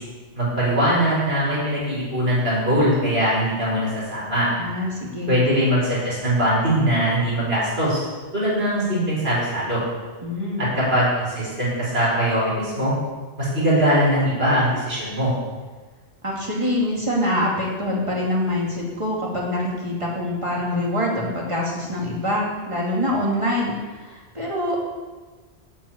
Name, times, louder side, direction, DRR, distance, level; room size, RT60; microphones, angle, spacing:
voice 1, 0.3-4.5 5.3-8.1 8.3-9.8 10.7-12.9 13.4-15.3, equal, 60° right, -7 dB, 5.1 m, -21 dB
voice 2, 4.6-5.3 10.2-10.7 16.2-24.8, left 1 dB, 25° right, -4 dB, 2.7 m, -25 dB
8.8 x 7.5 x 8.7 m, 1.3 s
omnidirectional pair, 1.2 m